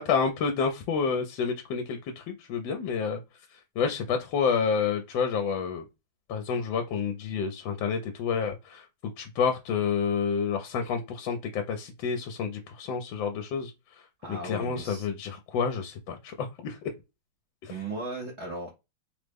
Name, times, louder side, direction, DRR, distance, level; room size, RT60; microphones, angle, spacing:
voice 1, 0.0-3.2 3.5-5.9 6.3-8.9 9.2-16.9 17.6-17.8, left 6 dB, 80° left, 1.3 m, -29 dB
voice 2, 14.2-15.1 17.7-18.7, right 2 dB, 65° right, 0.6 m, -37 dB
3.4 x 2.0 x 3.3 m
omnidirectional pair, 2.1 m